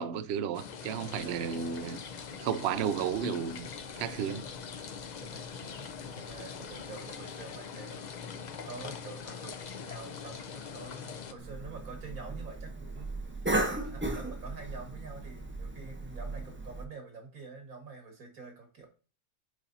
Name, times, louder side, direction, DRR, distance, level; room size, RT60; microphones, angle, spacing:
voice 1, 0.0-2.0 2.4-3.7 4.0-4.5, right 8 dB, 65° right, 0.7 m, -33 dB
sound 1, 0.5-11.3, left 6 dB, 55° left, 0.5 m, -43 dB
sound 2, 1.1-7.2, left 6 dB, 80° left, 1.4 m, -54 dB
voice 2, 1.2-1.6 5.2-5.4 5.9-8.1 8.6-13.1 13.4-18.9, right 4 dB, 90° right, 2.4 m, -47 dB
Cough, 11.4-16.8, right 2 dB, 10° right, 0.6 m, -36 dB
9.5 x 4.0 x 2.7 m
omnidirectional pair, 1.5 m